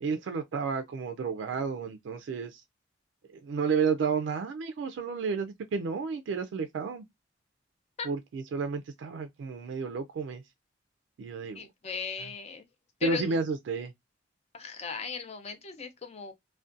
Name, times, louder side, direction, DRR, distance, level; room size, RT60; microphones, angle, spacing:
voice 1, 0.0-2.6 3.3-7.0 8.0-10.4 11.2-11.6 13.0-13.9, right 5 dB, 85° right, 0.3 m, -31 dB
voice 2, 11.5-12.6 13.0-13.4 14.5-16.3, left 6 dB, 35° left, 0.5 m, -37 dB
2.4 x 2.1 x 2.5 m
head